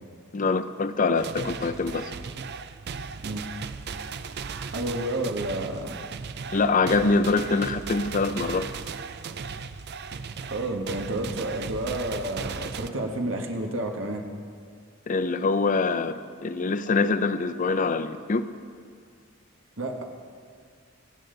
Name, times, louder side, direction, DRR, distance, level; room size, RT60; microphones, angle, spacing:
voice 1, 0.3-2.1 6.5-8.7 15.1-18.4, left 3 dB, 40° left, 11 dB, 0.5 m, -24 dB
sound 1, 1.2-12.9, right 5 dB, 55° right, 0.5 m, -37 dB
voice 2, 4.7-6.0 10.5-14.2 19.8-20.0, right 1 dB, 75° right, 2 dB, 1.5 m, -30 dB
24.5 x 8.7 x 3.9 m, 2.2 s
head